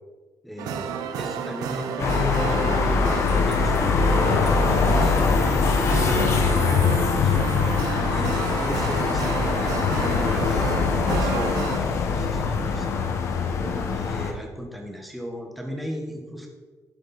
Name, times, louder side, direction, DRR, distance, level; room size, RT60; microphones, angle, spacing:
voice 1, 0.4-3.1 3.5-5.6 5.9-13.0 13.2-16.5, equal, ahead, 1 dB, 1.3 m, -36 dB
sound 1, 0.6-11.8, right 7 dB, 85° right, 0.9 m, -31 dB
sound 2, 2.0-14.3, left 5 dB, 50° left, 1.1 m, -22 dB
11.5 x 7.7 x 4.1 m, 1.3 s
cardioid pair, 170°, 6 cm